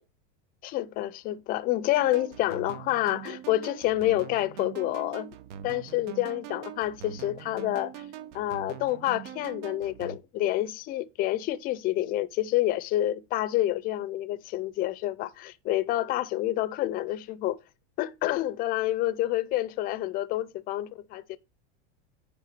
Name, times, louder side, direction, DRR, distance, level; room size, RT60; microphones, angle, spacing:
voice 1, 0.6-5.4 5.6-8.0 8.3-17.6 18.0-21.4, left 15 dB, 25° left, 0.4 m, -28 dB
sound 1, 1.9-10.2, right 10 dB, 90° right, 1.0 m, -43 dB
9.8 x 3.5 x 5.9 m
supercardioid pair, 160°, 35 cm